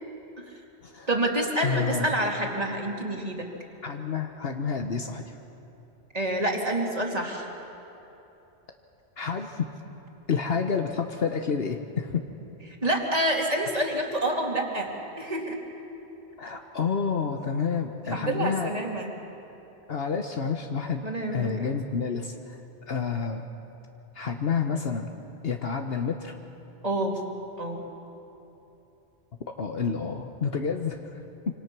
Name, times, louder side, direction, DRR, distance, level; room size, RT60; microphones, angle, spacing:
voice 1, 1.1-3.5 6.1-7.5 12.8-15.6 18.1-19.1 21.0-21.7 26.8-27.2 27.6-27.8, right 1 dB, 35° right, 0 dB, 2.7 m, -28 dB
voice 2, 1.6-2.1 3.8-5.4 9.2-9.7 10.3-12.2 16.4-18.7 19.9-21.0 21.3-22.6 22.9-23.5 24.1-25.1 25.4-26.4 29.6-31.5, left 6 dB, 65° left, 4 dB, 1.2 m, -29 dB
26.5 x 26.0 x 6.1 m, 3.0 s
omnidirectional pair, 1.1 m